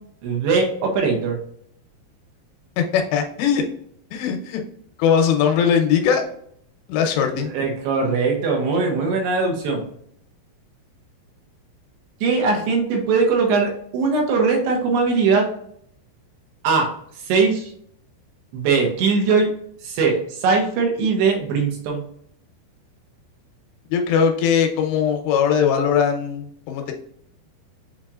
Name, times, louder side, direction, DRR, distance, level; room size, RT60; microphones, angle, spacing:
voice 1, 0.2-1.4 7.2-9.8 12.2-15.5 16.6-16.9 17.2-17.7 18.5-19.5 19.8-22.0, right 4 dB, 75° right, 1 dB, 3.2 m, -20 dB
voice 2, 2.9-3.6 4.1-4.6 5.0-6.2 6.9-7.5 23.9-26.9, left 7 dB, 80° left, 4 dB, 2.9 m, -20 dB
7.4 x 2.9 x 2.4 m, 0.66 s
omnidirectional pair, 4.9 m